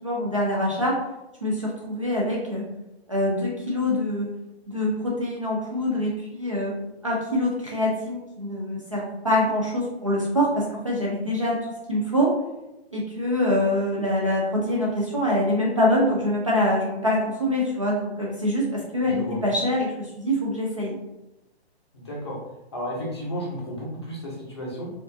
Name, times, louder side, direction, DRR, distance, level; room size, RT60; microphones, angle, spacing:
voice 1, 0.0-1.0 1.4-2.6 3.1-4.3 4.7-6.7 7.0-11.6 11.9-12.3 12.9-21.0, left 1 dB, 30° right, -4 dB, 0.4 m, -24 dB
voice 2, 19.0-19.4 21.9-22.4 22.7-24.9, equal, 25° left, -5 dB, 0.6 m, -33 dB
4.3 x 2.4 x 2.6 m, 0.94 s
hypercardioid pair, 175°, 32 cm